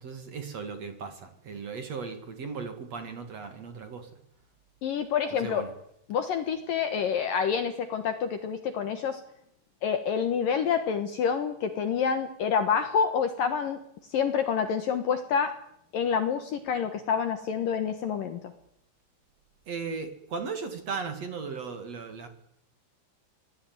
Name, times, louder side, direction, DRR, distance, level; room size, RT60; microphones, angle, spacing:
voice 1, 0.0-4.1 5.3-5.7 19.7-22.3, right 5 dB, 45° right, 7 dB, 2.4 m, -37 dB
voice 2, 4.8-5.6 6.1-9.2 9.8-13.8 14.1-15.5 15.9-18.4, left 7 dB, 65° left, 9 dB, 2.2 m, -27 dB
26.0 x 19.0 x 9.5 m, 0.75 s
omnidirectional pair, 5.7 m